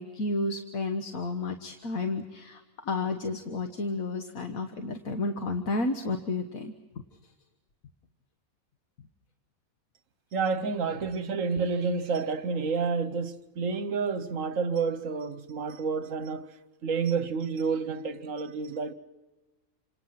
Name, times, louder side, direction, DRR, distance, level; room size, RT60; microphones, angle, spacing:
voice 1, 0.0-6.7, left 2 dB, 75° left, 1.8 m, -31 dB
voice 2, 10.3-16.5 16.8-18.9, right 5 dB, 65° right, 1.5 m, -29 dB
29.0 x 26.5 x 5.8 m
omnidirectional pair, 1.5 m